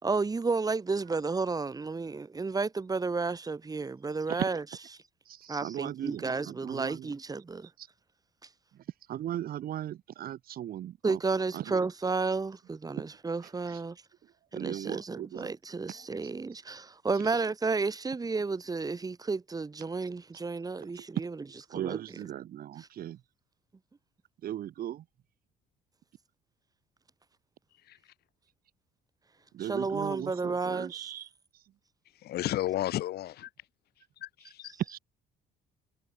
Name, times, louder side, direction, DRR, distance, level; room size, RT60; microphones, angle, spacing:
voice 1, 0.0-4.6 5.5-7.7 11.0-14.0 14.6-21.3 21.7-22.0 29.7-31.1, right 4 dB, 20° right, 3.1 m, -32 dB
voice 2, 5.3-7.1 7.8-7.9 8.7-11.2 11.5-11.9 13.0-13.1 13.7-13.8 14.5-15.5 15.9-16.1 17.2-17.4 21.0-21.1 21.7-23.2 24.4-25.0 29.5-31.3 34.9-35.0, right 12 dB, 60° right, 2.4 m, -38 dB
voice 3, 32.1-33.5 34.2-34.7, left 14 dB, 70° left, 3.0 m, -33 dB
cardioid pair, 110°, 17 cm